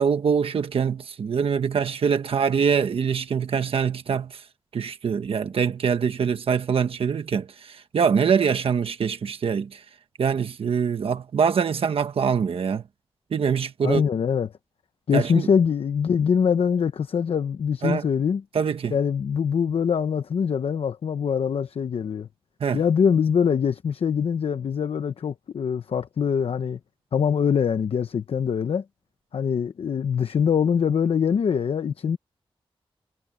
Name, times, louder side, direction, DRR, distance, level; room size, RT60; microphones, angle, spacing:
voice 1, 0.0-4.4 4.7-9.8 10.2-12.8 13.3-14.0 15.1-15.5 17.8-18.0 18.5-18.9 22.6-22.8, right 6 dB, 75° right, 1.2 m, -24 dB
voice 2, 13.8-14.5 15.1-18.4 18.9-22.3 22.7-26.8 27.1-28.8 29.3-32.2, left 7 dB, 80° left, 0.9 m, -23 dB
wide cardioid pair, 160°, 10 cm